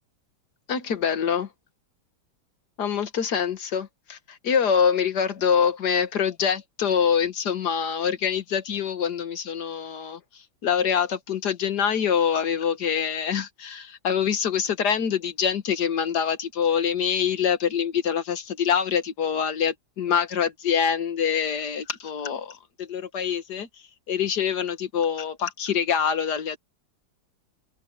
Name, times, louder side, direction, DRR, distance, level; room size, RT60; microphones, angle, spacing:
voice 1, 0.7-1.5 2.8-10.2 10.6-23.7 24.1-26.6, left 7 dB, 55° left, 2.0 m, -25 dB
omnidirectional pair, 2.1 m